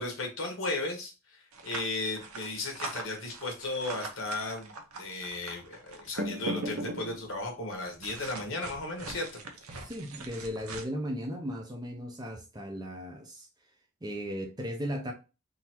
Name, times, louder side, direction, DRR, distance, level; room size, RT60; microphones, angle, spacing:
voice 1, 0.0-4.7 5.0-9.3, left 2 dB, 65° left, 2 dB, 1.4 m, -35 dB
sound 1, 1.5-7.4 8.0-10.8, right 1 dB, 85° right, 0.9 m, -39 dB
voice 2, 9.7-13.5 14.0-15.1, equal, 20° right, 1 dB, 0.7 m, -36 dB
3.9 x 2.8 x 4.4 m, 0.30 s
head